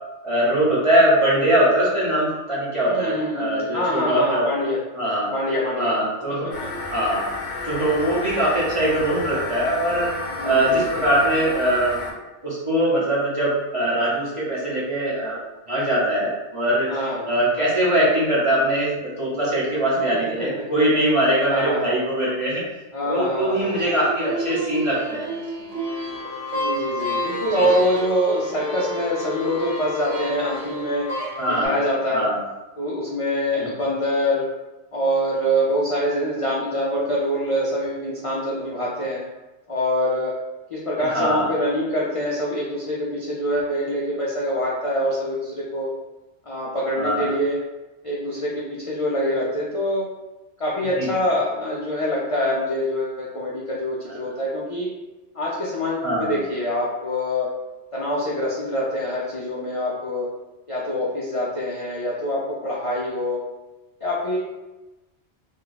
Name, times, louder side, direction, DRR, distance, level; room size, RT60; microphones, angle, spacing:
voice 1, 0.2-4.5 5.0-5.3 5.8-6.5 6.9-7.2 7.6-10.1 10.4-11.9 12.4-15.4 15.7-16.9 17.3-22.6 23.0-25.4 27.6-27.7 31.4-31.7 32.1-32.4 41.0-41.5 46.9-47.3 51.0-51.1 56.0-56.3, right 1 dB, 30° right, -7 dB, 0.8 m, -21 dB
voice 2, 2.9-4.8 5.2-6.0 6.6-6.7 10.3-11.0 16.9-17.3 20.4-20.7 21.4-22.0 22.9-23.9 26.5-31.1 31.4-32.3 32.8-34.5 34.9-39.2 39.7-40.3 40.7-45.9 46.5-47.6 48.0-50.1 50.6-54.9 55.3-57.5 57.9-60.3 60.7-63.4 64.0-64.4, equal, 50° left, -6 dB, 0.4 m, -25 dB
sound 1, 6.5-12.1, left 2 dB, 65° left, 1.0 m, -32 dB
sound 2, 23.6-31.7, equal, 75° right, 1.2 m, -30 dB
2.6 x 2.3 x 3.9 m, 1.1 s
omnidirectional pair, 1.2 m